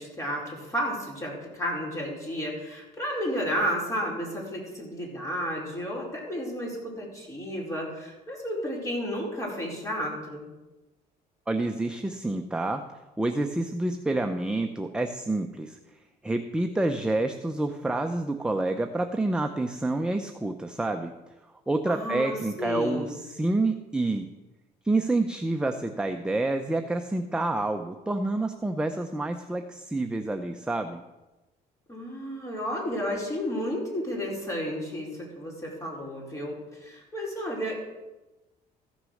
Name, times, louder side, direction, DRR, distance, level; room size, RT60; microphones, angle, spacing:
voice 1, 0.0-10.5 21.9-23.2 31.9-37.8, equal, 20° left, -3 dB, 4.5 m, -32 dB
voice 2, 11.5-12.8 13.2-15.8 16.2-21.1 21.7-24.3 24.8-31.0, right 2 dB, 5° right, 6 dB, 0.6 m, -28 dB
14.5 x 6.2 x 6.4 m, 1.1 s
cardioid pair, 110°, 17 cm